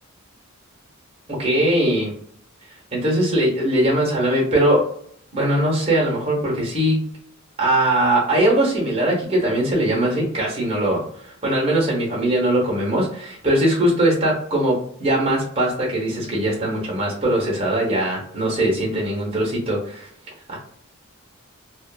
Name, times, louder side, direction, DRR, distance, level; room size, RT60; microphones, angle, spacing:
voice 1, 1.3-2.1 2.9-4.8 5.3-7.1 7.6-20.1 20.5-20.6, right 1 dB, 25° right, -4 dB, 0.9 m, -21 dB
2.5 x 2.4 x 2.3 m, 0.62 s
head